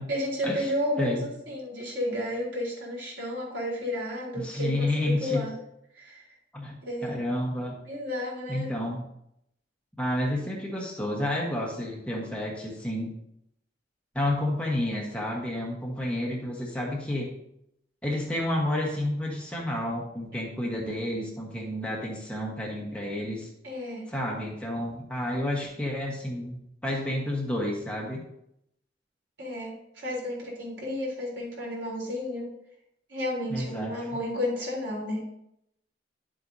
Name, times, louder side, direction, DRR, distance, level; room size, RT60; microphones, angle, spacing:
voice 1, 0.1-5.6 5.9-6.3 6.8-7.1 7.9-8.7 23.6-24.1 29.4-32.5 33.1-35.2, left 1 dB, 75° right, -5 dB, 3.9 m, -32 dB
voice 2, 4.4-5.4 6.5-7.8 8.5-9.0 10.0-13.1 14.1-17.3 18.0-23.5 24.1-28.2 33.5-34.2, left 1 dB, 5° left, -3 dB, 1.3 m, -30 dB
11.0 x 7.7 x 2.8 m, 0.77 s
head